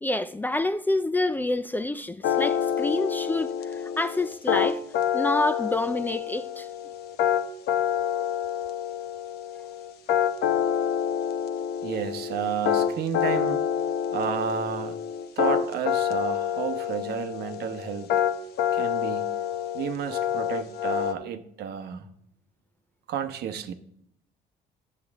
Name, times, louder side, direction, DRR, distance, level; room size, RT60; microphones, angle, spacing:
voice 1, 0.0-4.8 5.1-6.7, left 2 dB, 10° left, 0.4 m, -27 dB
sound 1, 2.2-21.1, left 9 dB, 70° left, 0.8 m, -27 dB
voice 2, 11.8-13.6 14.1-14.9 15.4-18.1 18.7-19.3 19.7-22.1 23.1-23.7, right 8 dB, 75° right, 1.0 m, -31 dB
12.0 x 7.6 x 3.5 m
cardioid pair, 110°, 17 cm